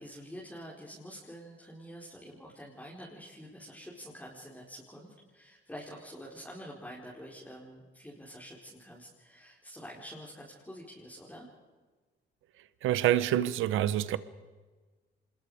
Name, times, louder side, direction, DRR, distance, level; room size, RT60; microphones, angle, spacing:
voice 1, 0.0-11.5, equal, 5° left, -4 dB, 4.6 m, -47 dB
voice 2, 12.8-14.2, right 12 dB, 85° right, 16 dB, 1.0 m, -26 dB
25.5 x 21.0 x 5.0 m, 1.4 s
cardioid pair, 90°, 20 cm